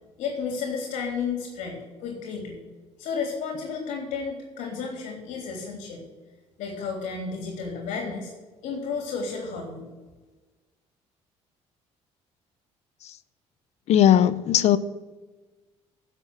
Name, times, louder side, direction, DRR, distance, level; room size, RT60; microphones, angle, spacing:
voice 1, 0.2-2.6 3.0-6.0 6.6-8.3 8.6-9.9, left 5 dB, 80° left, 3.4 m, -32 dB
voice 2, 13.9-14.8, left 10 dB, 65° left, 0.7 m, -18 dB
11.0 x 7.6 x 7.7 m
cardioid pair, 110°, 12 cm